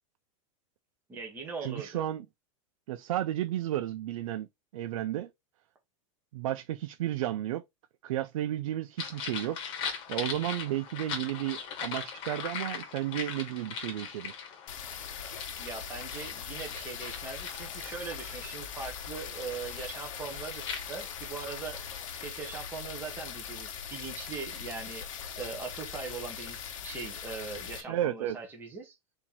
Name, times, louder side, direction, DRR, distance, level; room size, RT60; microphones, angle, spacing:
voice 1, 1.1-2.0 15.6-21.8 22.2-25.1 25.4-29.0, right 5 dB, 10° right, 1.0 m, -41 dB
voice 2, 1.6-2.2 2.9-4.5 4.7-5.3 6.3-7.6 8.0-9.6 10.1-14.3 27.9-28.4, right 13 dB, 85° right, 0.5 m, -32 dB
sound 1, 9.0-22.2, left 7 dB, 30° left, 1.3 m, -41 dB
sound 2, 14.7-27.8, left 8 dB, 75° left, 1.3 m, -41 dB
4.4 x 2.9 x 3.9 m
supercardioid pair, 170°, 17 cm